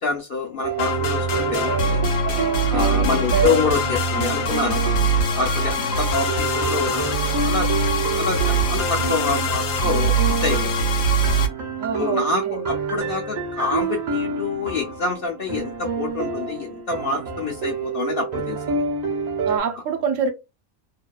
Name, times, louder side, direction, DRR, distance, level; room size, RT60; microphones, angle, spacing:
voice 1, 0.0-2.0 2.7-4.9 5.4-7.0 7.3-7.7 8.1-10.8 11.9-18.8, left 4 dB, 60° left, 0.6 m, -26 dB
sound 1, 0.6-19.6, right 4 dB, 60° right, 0.4 m, -28 dB
sound 2, 0.8-11.5, right 2 dB, 75° left, 1.0 m, -22 dB
voice 2, 2.7-3.6 11.8-12.7 19.4-20.3, right 5 dB, 75° right, 1.0 m, -27 dB
2.6 x 2.1 x 2.2 m
omnidirectional pair, 1.4 m